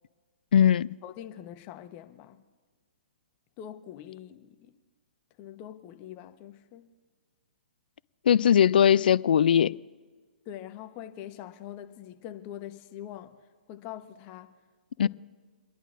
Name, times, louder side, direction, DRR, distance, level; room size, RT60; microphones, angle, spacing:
voice 1, 0.5-0.9 8.3-9.8 15.0-15.1, left 9 dB, 65° left, 0.3 m, -20 dB
voice 2, 1.0-2.4 3.6-4.7 5.4-6.9 10.4-13.4 13.7-14.5 15.0-15.1, left 11 dB, 35° left, 1.0 m, -43 dB
29.0 x 11.0 x 2.6 m
hypercardioid pair, 130°, 5 cm